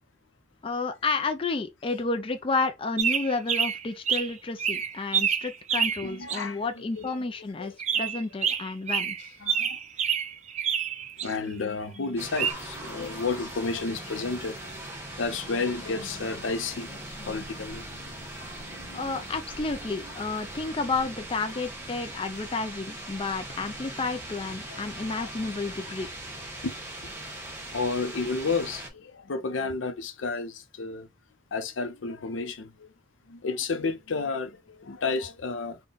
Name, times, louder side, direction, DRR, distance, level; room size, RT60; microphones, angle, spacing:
voice 1, 0.6-9.2 18.9-26.1, left 3 dB, 30° left, 0.4 m, -31 dB
sound 1, 3.0-4.3 4.6-6.4 7.8-11.3 12.4-12.5, right 7 dB, 35° right, 0.4 m, -27 dB
voice 2, 6.0-7.1 7.6-8.1 9.4-9.8 11.2-14.7 15.2-17.8 24.7-24.8 25.2-25.3 26.6-26.8 27.7-31.1 31.5-32.9 33.3-35.8, left 4 dB, 85° left, 0.6 m, -32 dB
sound 2, 12.2-28.9, right 1 dB, 15° right, 1.0 m, -40 dB
4.0 x 2.2 x 3.8 m
head